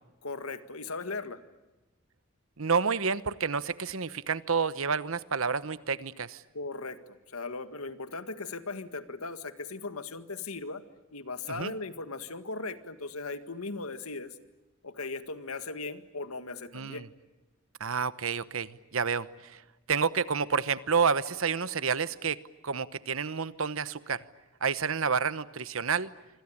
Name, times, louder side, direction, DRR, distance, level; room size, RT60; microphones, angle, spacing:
voice 1, 0.2-1.4 6.5-10.8 11.1-14.4 14.8-17.1, left 3 dB, 90° left, 10 dB, 1.9 m, -38 dB
voice 2, 2.6-6.4 11.5-11.7 16.7-17.0 17.8-19.6 19.9-22.4 22.6-24.2 24.6-26.1, right 5 dB, 70° right, 15 dB, 1.0 m, -29 dB
26.5 x 26.0 x 8.7 m, 1.1 s
head